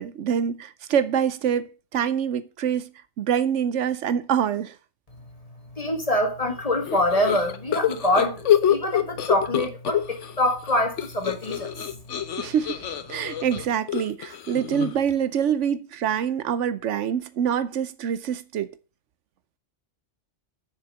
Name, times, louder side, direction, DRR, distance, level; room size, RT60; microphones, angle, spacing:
voice 1, 0.0-2.9 3.2-4.8 12.4-12.8 13.1-18.7, right 8 dB, 85° right, 1.1 m, -25 dB
voice 2, 5.8-11.9, left 1 dB, 30° left, 1.9 m, -25 dB
sound 1, 6.9-10.3 10.6-15.1, left 10 dB, 90° left, 1.2 m, -26 dB
7.0 x 6.7 x 7.4 m
omnidirectional pair, 1.2 m